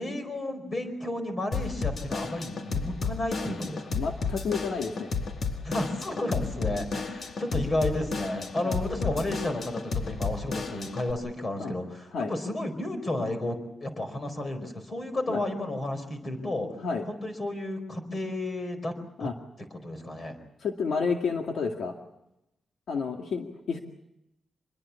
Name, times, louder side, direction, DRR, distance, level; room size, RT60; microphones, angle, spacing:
voice 1, 0.0-4.0 5.6-16.7 17.1-18.9 19.2-19.3 19.8-20.3, left 1 dB, 30° left, 7 dB, 4.5 m, -32 dB
Drum kit / Drum, 1.5-11.1, left 4 dB, 45° left, 1.7 m, -33 dB
voice 2, 3.9-5.1 8.6-8.8 11.6-11.8 12.1-12.3 15.3-15.4 16.8-17.1 19.2-19.3 20.6-21.9 22.9-23.8, left 5 dB, 65° left, 3 dB, 2.1 m, -30 dB
26.5 x 22.0 x 7.2 m, 0.87 s
wide cardioid pair, 165°, 0 cm